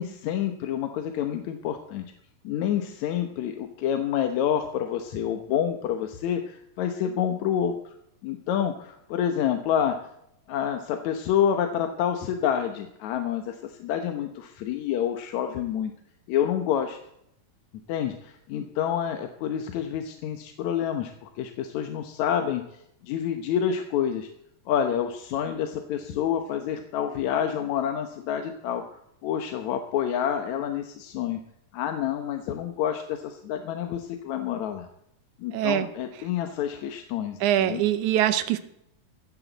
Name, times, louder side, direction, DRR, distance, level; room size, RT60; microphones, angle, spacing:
voice 1, 0.0-2.1 2.4-7.8 8.2-10.1 10.5-15.9 16.3-17.0 17.9-22.6 23.0-24.3 24.7-28.8 29.2-31.4 31.7-34.9 35.4-37.8, left 9 dB, 70° left, 6 dB, 2.1 m, -28 dB
voice 2, 35.5-35.9 37.4-38.6, right 12 dB, 75° right, 12 dB, 2.2 m, -23 dB
16.5 x 13.0 x 4.0 m, 0.76 s
omnidirectional pair, 3.7 m